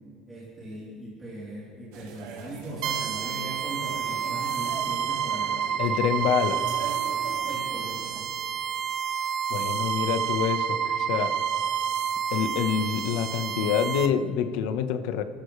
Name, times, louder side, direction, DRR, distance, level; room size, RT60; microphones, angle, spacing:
voice 1, 0.3-5.5 7.3-8.3, right 1 dB, 10° right, -9 dB, 3.6 m, -39 dB
sound 1, 1.9-8.2, right 4 dB, 90° right, 2.9 m, -42 dB
sound 2, 2.8-14.1, right 8 dB, 60° right, 1.0 m, -29 dB
voice 2, 5.8-6.6 9.5-11.3 12.3-15.2, left 8 dB, 70° left, 8 dB, 1.1 m, -26 dB
29.5 x 13.5 x 3.3 m, 2.5 s
cardioid pair, 175°, 0 cm